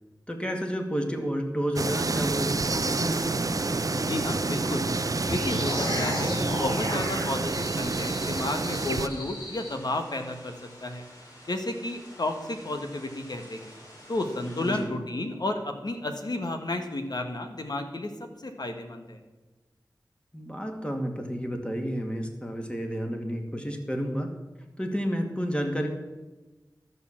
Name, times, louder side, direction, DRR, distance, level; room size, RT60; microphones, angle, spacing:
voice 1, 0.3-3.9 14.6-14.9 20.3-24.3 24.8-25.9, equal, 15° left, 3 dB, 2.0 m, -31 dB
sound 1, 1.8-9.1, right 3 dB, 50° right, 0.6 m, -28 dB
sound 2, 2.6-14.8, left 1 dB, 50° left, 4.4 m, -50 dB
voice 2, 3.9-4.9 5.3-10.5 10.8-11.0 11.5-13.7 14.1-18.1 18.4-19.2, left 2 dB, 65° left, 5 dB, 1.6 m, -32 dB
sound 3, 5.3-9.7, left 1 dB, 85° left, 3.4 m, -34 dB
12.5 x 6.9 x 7.4 m, 1.2 s
wide cardioid pair, 55°, 7 cm